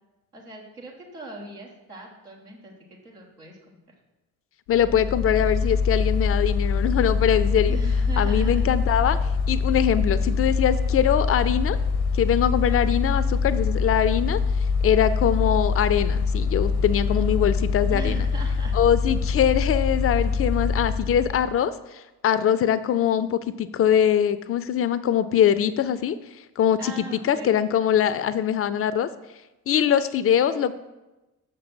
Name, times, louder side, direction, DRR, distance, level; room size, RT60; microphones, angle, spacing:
voice 1, 0.3-2.7 3.0-3.6 3.9-4.0 7.7-9.0 17.9-18.8 26.8-27.6, right 3 dB, 85° right, -3 dB, 1.3 m, -40 dB
Mechanical fan, 4.7-21.6, left 5 dB, 80° left, 0.8 m, -24 dB
voice 2, 4.7-7.8 8.2-9.2 9.5-11.8 12.1-14.4 14.8-18.3 18.7-26.2 26.6-29.1 29.7-30.7, left 9 dB, 35° left, 15 dB, 0.4 m, -22 dB
6.5 x 5.3 x 6.1 m, 1.0 s
figure-of-eight pair, 40°, 44 cm